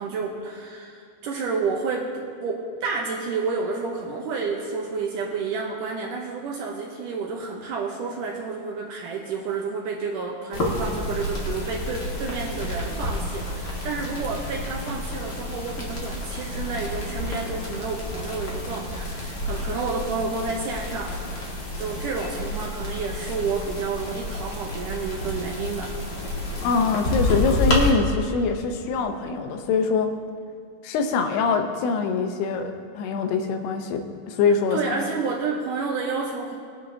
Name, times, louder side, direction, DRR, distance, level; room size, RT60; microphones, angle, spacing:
voice 1, 0.0-25.9 34.7-36.6, right 4 dB, 70° right, 0 dB, 2.1 m, -30 dB
sound 1, 10.5-27.9, left 1 dB, 55° left, 1.1 m, -30 dB
voice 2, 26.6-30.1 30.8-35.0, left 4 dB, 85° left, 6 dB, 2.9 m, -24 dB
21.0 x 9.6 x 2.8 m, 2.2 s
omnidirectional pair, 4.6 m